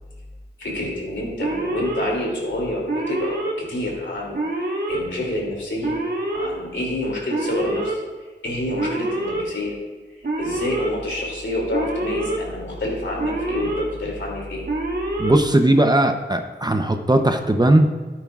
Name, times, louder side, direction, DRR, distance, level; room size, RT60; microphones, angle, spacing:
voice 1, 0.6-6.0 6.3-8.0 8.4-9.7 10.4-14.6, left 1 dB, 75° left, -2 dB, 2.8 m, -28 dB
Alarm, 1.4-2.1 2.9-3.5 4.3-5.0 5.8-6.5 7.3-8.0 8.8-9.4 10.2-10.9 11.7-12.4 13.2-13.8 14.7-15.3, right 2 dB, 55° right, 1.7 m, -26 dB
voice 2, 15.2-17.9, right 1 dB, 20° right, 5 dB, 0.7 m, -18 dB
12.5 x 9.4 x 2.4 m, 1.3 s
wide cardioid pair, 70°, 19 cm